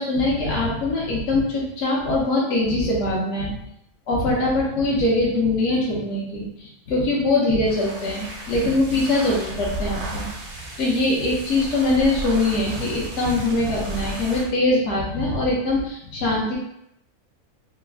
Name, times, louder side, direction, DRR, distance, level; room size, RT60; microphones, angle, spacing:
voice 1, 0.0-3.6 4.1-10.3 10.8-16.5, left 2 dB, 60° left, -4 dB, 1.0 m, -22 dB
sound 1, 7.5-14.5, right 2 dB, 85° right, 1.2 m, -34 dB
3.2 x 2.0 x 3.3 m, 0.78 s
omnidirectional pair, 1.5 m